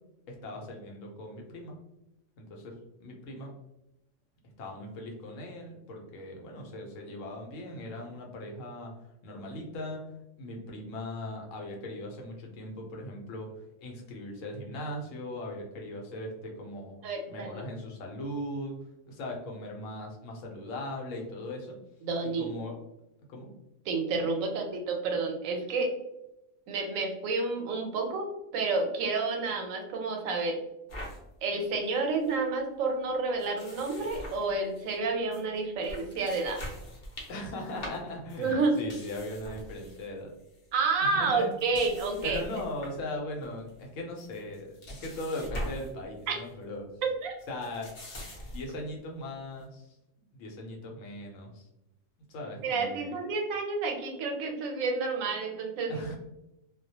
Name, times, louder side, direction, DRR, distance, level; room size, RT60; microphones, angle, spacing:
voice 1, 0.3-1.7 2.4-2.7 3.0-3.5 4.6-8.9 9.2-10.0 10.4-17.0 17.3-18.8 19.1-21.8 22.4-22.7 23.3-23.5 37.3-40.3 41.0-41.5 42.2-46.9 47.5-47.9 48.4-49.9 50.3-51.7 52.3-53.1 55.9-56.2, left 1 dB, 75° left, 0 dB, 0.9 m, -39 dB
voice 2, 17.0-17.5 22.0-22.5 23.9-25.9 26.7-30.6 31.4-36.6 38.4-38.7 40.7-42.4 46.3-46.4 47.2-47.3 52.6-56.0, right 3 dB, 85° right, 2 dB, 1.0 m, -30 dB
sound 1, 30.9-31.2 31.6-31.7 32.0-32.4 33.4-35.0 35.3-35.4 35.8-40.1 40.4-40.7 41.4-43.0 43.4-43.8 44.2-45.9 46.2-46.5 47.4-48.8, equal, 45° left, 0.6 m, -43 dB
2.3 x 2.1 x 2.7 m, 0.91 s
omnidirectional pair, 1.4 m